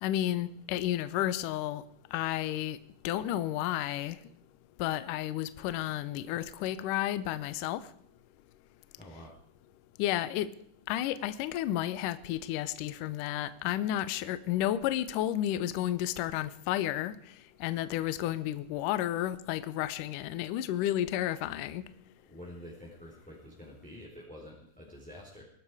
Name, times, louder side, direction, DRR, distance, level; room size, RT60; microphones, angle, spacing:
voice 1, 0.0-1.8 2.1-2.8 3.0-4.2 4.8-7.9 10.0-10.5 10.9-17.3 17.6-21.9, left 13 dB, 85° left, 1.9 m, -32 dB
voice 2, 9.0-9.3 22.3-25.4, left 1 dB, ahead, 3.5 m, -48 dB
22.5 x 12.0 x 4.9 m
omnidirectional pair, 4.7 m